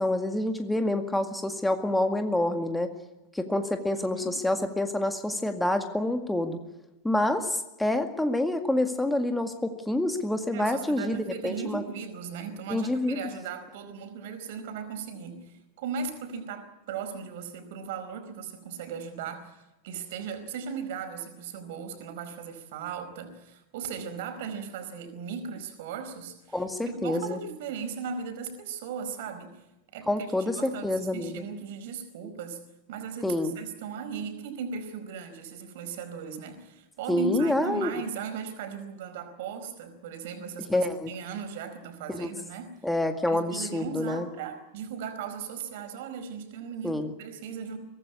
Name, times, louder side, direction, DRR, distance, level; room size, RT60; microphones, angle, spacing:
voice 1, 0.0-2.9 3.3-6.6 7.0-11.8 12.7-13.2 26.5-27.4 30.1-31.4 33.2-33.6 37.1-37.9 40.7-41.1 42.1-42.3 42.8-44.3 46.8-47.1, left 1 dB, 5° left, 7 dB, 2.0 m, -27 dB
voice 2, 4.0-4.4 10.5-26.6 26.9-29.6 29.9-30.1 30.4-32.6 32.9-42.7 43.3-47.8, right 6 dB, 50° right, 9 dB, 4.6 m, -37 dB
23.5 x 18.0 x 9.7 m, 1.0 s
figure-of-eight pair, 90°, 0 cm